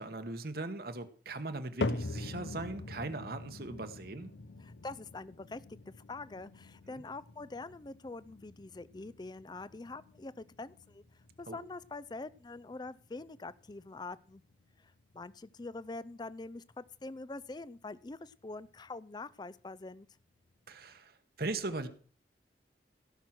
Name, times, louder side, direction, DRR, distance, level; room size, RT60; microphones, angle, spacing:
voice 1, 0.0-4.3 6.9-7.0 11.5-11.6 20.7-21.9, right 2 dB, 60° right, 9 dB, 1.2 m, -39 dB
sound 1, 1.8-18.1 18.5-19.0 19.6-19.7 20.5-20.6, left 3 dB, 85° left, 0.7 m, -44 dB
voice 2, 4.6-11.0 11.4-14.4 14.8-20.1, left 3 dB, 25° left, 17 dB, 0.5 m, -45 dB
16.5 x 6.2 x 6.0 m, 0.42 s
head